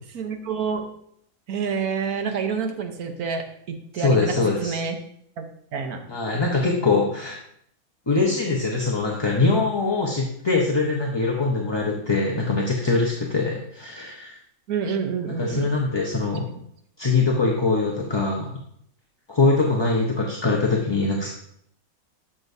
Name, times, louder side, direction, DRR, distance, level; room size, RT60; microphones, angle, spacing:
voice 1, 0.1-0.9 1.5-5.0 5.4-5.5 5.7-6.0 14.7-15.7, right 6 dB, 85° right, 6 dB, 1.4 m, -28 dB
voice 2, 3.9-4.8 6.1-7.4 8.1-14.4 15.4-16.5 17.0-18.6 19.3-21.3, left 3 dB, 25° left, -2 dB, 0.8 m, -23 dB
12.0 x 6.2 x 2.7 m, 0.68 s
omnidirectional pair, 1.5 m